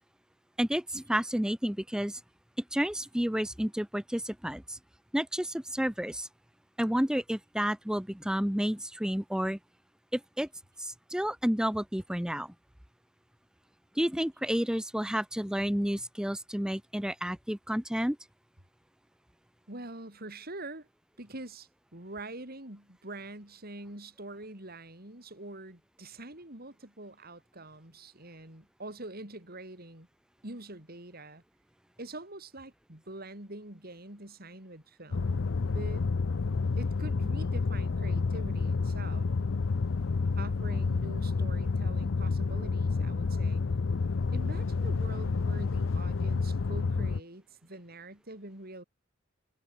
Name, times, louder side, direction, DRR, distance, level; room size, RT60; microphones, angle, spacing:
voice 1, 0.6-2.2 2.7-4.8 5.1-6.3 6.8-9.6 10.1-10.5 10.8-12.5 14.0-18.2, equal, 5° right, 0.7 m, -30 dB
voice 2, 19.7-20.9 21.2-30.1 30.4-31.4 32.0-35.5 35.7-36.0 36.8-39.3 40.3-43.6 44.3-48.8, right 2 dB, 50° right, 6.6 m, -45 dB
sound 1, 35.1-47.2, left 4 dB, 80° left, 0.6 m, -29 dB
head